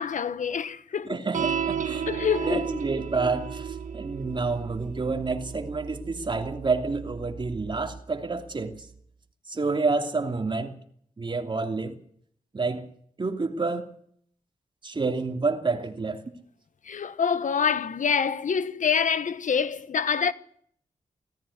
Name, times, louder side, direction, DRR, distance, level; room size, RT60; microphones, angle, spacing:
voice 1, 0.0-1.2 2.1-2.8 16.9-20.3, left 6 dB, 70° left, 1.2 m, -26 dB
voice 2, 1.1-2.0 2.5-8.9 9.5-10.8 11.2-12.0 12.5-12.9 13.2-13.9 14.8-16.2, right 3 dB, 35° right, 2.9 m, -29 dB
sound 1, 1.3-8.0, right 7 dB, 70° right, 1.3 m, -34 dB
18.0 x 14.5 x 9.7 m
cardioid pair, 80°, 14 cm